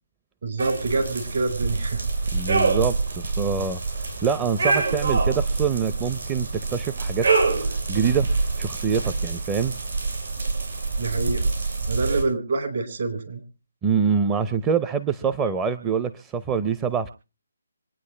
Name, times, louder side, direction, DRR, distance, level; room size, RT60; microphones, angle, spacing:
voice 1, 0.4-2.0 11.0-11.5 11.9-13.4, right 3 dB, 55° right, 5 dB, 4.9 m, -26 dB
sound 1, 0.6-12.2, right 3 dB, 70° right, 7.3 m, -26 dB
voice 2, 2.3-7.3 7.6-9.7 13.8-17.1, right 6 dB, 15° right, 10 dB, 0.6 m, -25 dB
25.5 x 9.5 x 3.3 m, 0.34 s
figure-of-eight pair, 150°, 0 cm